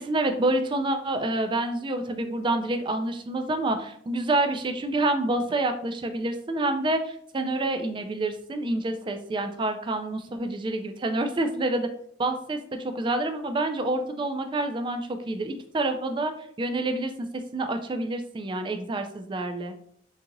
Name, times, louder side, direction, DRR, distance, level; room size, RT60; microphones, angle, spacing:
voice 1, 0.0-11.9 12.2-16.3 16.6-17.3 17.5-19.7, right 2 dB, 25° right, 7 dB, 0.3 m, -28 dB
3.9 x 2.8 x 2.5 m, 0.64 s
head